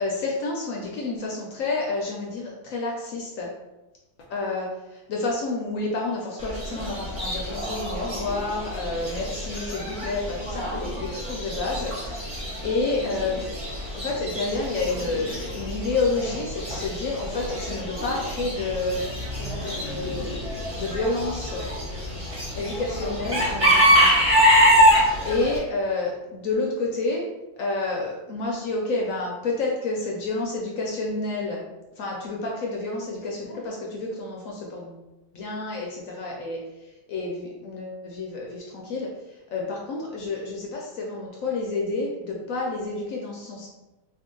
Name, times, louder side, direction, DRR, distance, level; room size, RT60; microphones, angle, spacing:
voice 1, 0.0-3.5 4.3-13.5 13.9-19.0 19.4-20.3 20.8-21.6 22.5-24.1 25.2-27.2 27.6-31.6 32.0-35.0 35.3-43.7, left 3 dB, 70° left, -1 dB, 0.9 m, -29 dB
Chicken rooster / Bird, 6.4-25.6, equal, 25° right, 1.1 m, -25 dB
2.8 x 2.6 x 3.7 m, 1.0 s
omnidirectional pair, 1.6 m